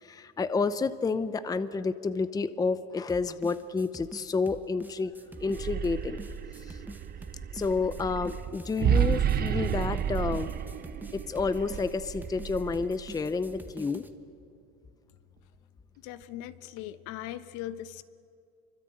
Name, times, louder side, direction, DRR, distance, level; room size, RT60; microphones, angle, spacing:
voice 1, 0.0-5.1 5.4-6.2 6.6-6.8 7.5-10.5 11.1-14.0, left 4 dB, 10° left, 13 dB, 0.7 m, -30 dB
sound 1, 3.1-14.1, right 2 dB, 5° right, 1.3 m, -46 dB
sound 2, 5.4-13.5, right 8 dB, 30° right, 0.9 m, -31 dB
voice 2, 16.0-18.0, left 12 dB, 65° left, 12 dB, 1.2 m, -39 dB
27.0 x 24.5 x 8.8 m, 2.5 s
supercardioid pair, 130°, 33 cm